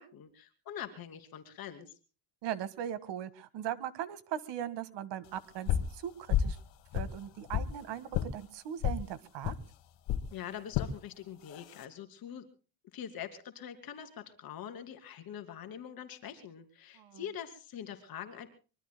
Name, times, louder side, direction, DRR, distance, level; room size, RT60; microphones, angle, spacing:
voice 1, 0.0-1.9 10.3-12.5 12.9-18.5, left 9 dB, 50° left, 7 dB, 2.9 m, -44 dB
voice 2, 2.4-6.6 6.9-9.5 17.0-17.3, right 10 dB, 60° right, 14 dB, 1.8 m, -39 dB
sound 1, 5.7-5.9 6.3-6.6 6.9-7.7 8.1-8.3 8.8-9.0 9.4-9.6 10.1-10.3 10.7-10.9 11.5-11.8, left 9 dB, 65° left, 2.0 m, -30 dB
24.5 x 23.5 x 2.2 m, 0.36 s
cardioid pair, 155°, 47 cm